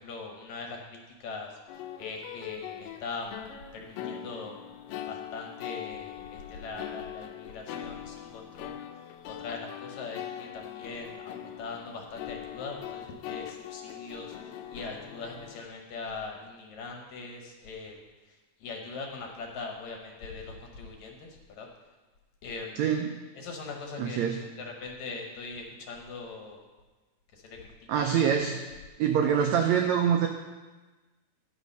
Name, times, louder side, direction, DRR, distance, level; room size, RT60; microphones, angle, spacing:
voice 1, 0.0-1.6 2.0-3.5 3.7-4.6 5.1-8.8 9.3-14.3 14.7-18.0 18.6-21.7 22.4-22.8 23.4-24.3 24.6-26.6 27.3-27.7 27.9-28.1, left 4 dB, 65° left, 2 dB, 2.1 m, -41 dB
sound 1, 1.7-15.6, left 10 dB, 85° left, 2.3 m, -41 dB
voice 2, 22.8-23.2 24.0-24.4 27.9-28.6 29.0-30.3, right 8 dB, 85° right, 4 dB, 1.6 m, -25 dB
10.5 x 7.3 x 5.4 m, 1.2 s
omnidirectional pair, 3.9 m